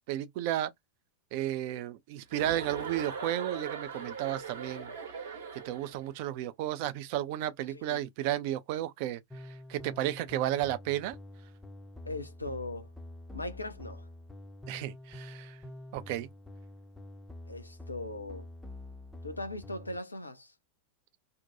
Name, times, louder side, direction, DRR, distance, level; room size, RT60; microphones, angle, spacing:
voice 1, 0.1-0.7 1.3-4.9 5.2-11.2 14.7-15.6 15.9-16.3, right 13 dB, 45° right, 0.4 m, -33 dB
Chuckle chortle, 2.3-6.0, right 5 dB, 65° right, 0.9 m, -40 dB
sound 1, 9.3-20.0, left 1 dB, 5° left, 0.5 m, -47 dB
voice 2, 12.0-12.9 13.3-14.1 17.5-18.5 19.2-20.5, left 2 dB, 80° left, 0.5 m, -39 dB
2.6 x 2.2 x 2.5 m
figure-of-eight pair, 90°, 0 cm